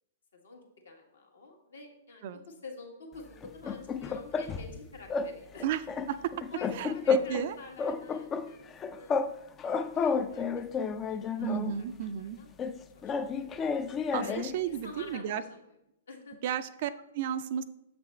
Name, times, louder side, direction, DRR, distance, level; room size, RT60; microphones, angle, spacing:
voice 1, 0.3-5.7 6.2-9.1 9.6-12.5 12.9-13.7 14.2-15.6 16.1-16.4, left 3 dB, 70° left, 1 dB, 1.6 m, -48 dB
sound 1, 3.4-4.8 5.1-5.3 5.6-7.5 7.8-9.3 9.6-11.8 12.6-14.6, left 5 dB, 20° left, 0.4 m, -31 dB
voice 2, 6.7-7.5 11.4-12.4 14.1-15.4 16.4-17.6, right 9 dB, 50° right, 12 dB, 0.4 m, -33 dB
6.9 x 5.9 x 3.2 m, 0.84 s
figure-of-eight pair, 110°, 0 cm